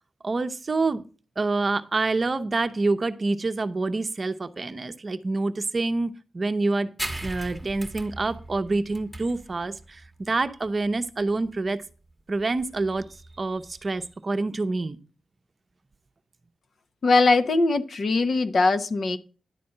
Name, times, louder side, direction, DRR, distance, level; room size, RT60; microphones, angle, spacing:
voice 1, 0.2-1.0 1.4-6.9 7.2-11.8 12.3-13.0 13.4-15.0, right 3 dB, 35° right, 10 dB, 0.8 m, -27 dB
sound 1, 7.0-14.1, right 1 dB, 5° right, 1.2 m, -39 dB
voice 2, 17.0-19.2, left 3 dB, 55° left, 8 dB, 0.9 m, -21 dB
11.0 x 4.2 x 7.7 m, 0.36 s
wide cardioid pair, 120°, 0 cm